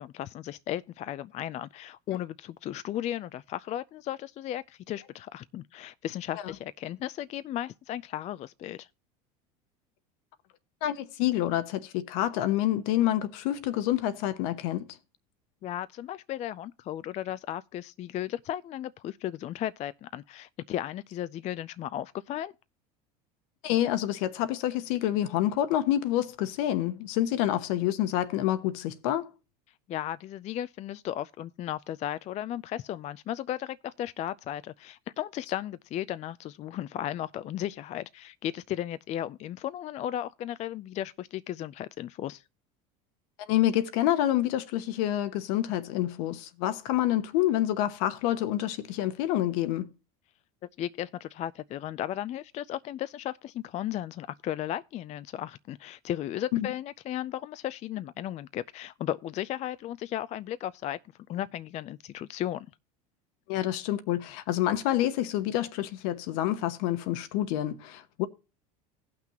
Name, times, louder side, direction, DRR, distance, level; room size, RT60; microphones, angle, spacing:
voice 1, 0.0-8.9 15.6-22.5 29.9-42.4 50.8-61.0 61.3-62.7, left 12 dB, 35° left, 0.4 m, -35 dB
voice 2, 10.8-14.9 23.6-29.3 43.5-49.9 56.5-56.7 63.5-68.3, left 13 dB, 70° left, 1.1 m, -27 dB
17.5 x 5.9 x 2.9 m
supercardioid pair, 100°, 19 cm